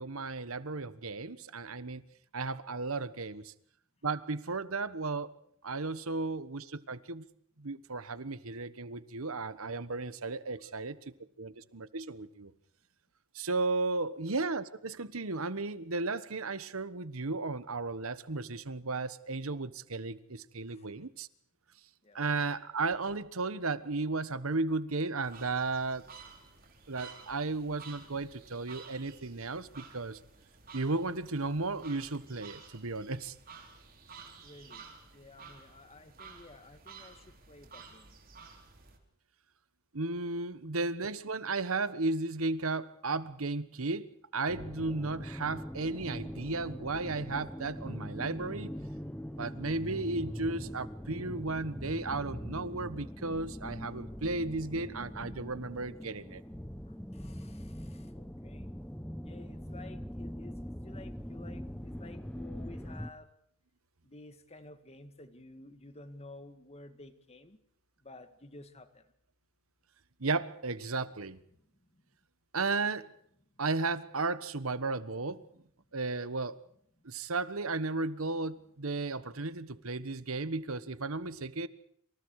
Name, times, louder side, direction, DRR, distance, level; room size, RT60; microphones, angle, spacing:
voice 1, 0.0-2.0 2.3-3.5 4.0-5.3 5.6-7.2 7.6-11.0 11.4-12.5 13.3-21.3 22.1-26.1 26.9-30.2 30.7-33.3 39.9-48.7 49.4-56.4 70.2-71.4 72.5-73.1 73.6-75.4 75.9-76.6 77.0-81.7, right 3 dB, 75° right, 14 dB, 1.3 m, -34 dB
sound 1, 25.2-39.0, right 5 dB, 45° right, 4.3 m, -53 dB
voice 2, 34.4-34.9 35.1-38.2 57.1-58.7 59.2-63.3 64.0-67.6 68.0-69.0 71.9-72.0, left 2 dB, 30° left, 9 dB, 2.1 m, -52 dB
sound 2, 44.5-63.1, equal, 5° left, 0.9 m, -42 dB
27.5 x 26.5 x 4.9 m, 0.65 s
head